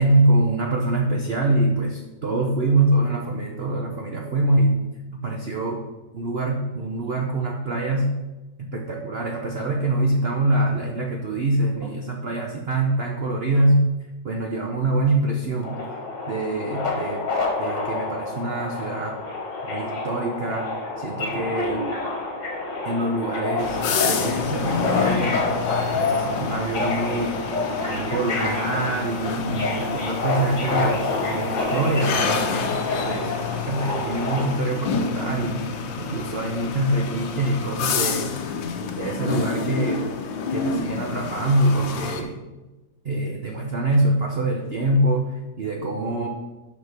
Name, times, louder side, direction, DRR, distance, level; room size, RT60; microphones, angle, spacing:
voice 1, 0.0-4.8 5.1-5.8 6.1-8.1 8.6-13.8 14.2-15.8 16.3-17.3 17.6-19.2 19.7-20.7 21.0-21.8 22.8-25.5 25.9-27.4 27.8-32.7 33.0-33.3 33.7-35.7 36.0-38.3 39.0-40.0 40.5-42.3 43.0-45.3 45.6-46.3, right 2 dB, 65° right, 1 dB, 0.6 m, -24 dB
Subway metro underground, 15.6-34.4, left 3 dB, 40° left, 1.6 m, -28 dB
sound 1, 23.6-42.2, left 5 dB, 75° left, 1.5 m, -28 dB
6.1 x 5.4 x 5.8 m, 1.1 s
omnidirectional pair, 2.1 m